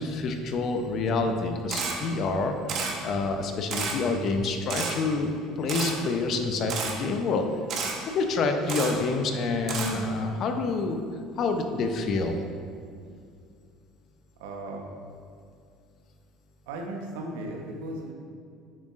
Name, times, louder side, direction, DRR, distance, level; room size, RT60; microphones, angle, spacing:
voice 1, 0.0-5.3 5.6-7.5 8.0-11.1 11.4-12.3, left 3 dB, 50° left, 5 dB, 0.7 m, -27 dB
Camera, 1.7-1.9 2.7-2.9 3.7-3.9 4.7-4.9 5.7-5.9 6.7-6.9 7.7-7.9 8.7-8.9 9.7-9.9, right 5 dB, 50° right, 1.1 m, -30 dB
voice 2, 14.4-14.9 16.7-18.1, right 1 dB, 80° right, 1 dB, 1.0 m, -36 dB
8.2 x 6.3 x 2.5 m, 2.3 s
hypercardioid pair, 75°, 0 cm